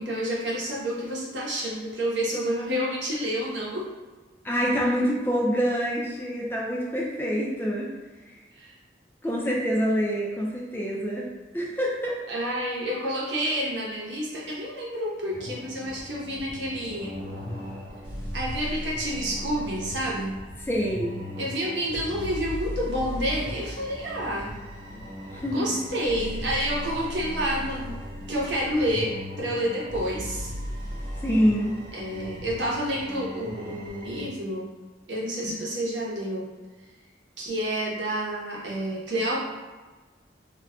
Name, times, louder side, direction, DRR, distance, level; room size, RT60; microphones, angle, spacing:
voice 1, 0.0-3.8 8.5-8.7 12.3-17.2 18.3-20.3 21.4-24.5 25.5-28.0 28.3-30.5 31.9-34.7 35.1-36.5 37.4-39.4, equal, 75° right, -4 dB, 0.7 m, -29 dB
voice 2, 4.4-7.9 9.2-11.3 11.5-12.2 20.7-21.2 25.3-25.8 31.2-31.7, equal, 10° left, -3 dB, 0.3 m, -26 dB
sound 1, 15.3-34.2, equal, 30° right, 0.8 m, -37 dB
2.3 x 2.1 x 3.5 m, 1.3 s
head